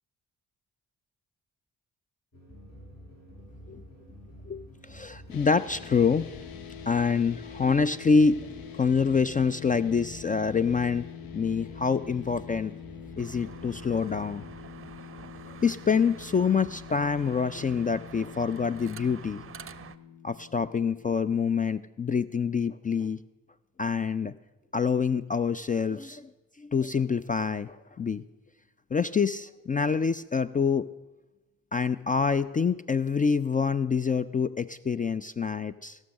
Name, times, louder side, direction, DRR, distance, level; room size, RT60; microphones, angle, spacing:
sound 1, 2.3-14.5, equal, 45° left, 4.9 m, -49 dB
voice 1, 4.5-6.3 6.9-8.4 8.7-11.1 11.3-12.7 13.2-14.4 15.5-19.4 20.2-23.2 23.8-24.3 24.7-26.3 26.6-28.2 28.9-30.9 31.7-36.0, left 5 dB, 25° left, 14 dB, 0.3 m, -26 dB
sound 2, 5.3-21.7, left 9 dB, 75° left, 0.9 m, -45 dB
sound 3, 13.2-20.0, right 7 dB, 35° right, 0.6 m, -47 dB
16.0 x 6.3 x 6.4 m, 1.1 s
supercardioid pair, 50°, 36 cm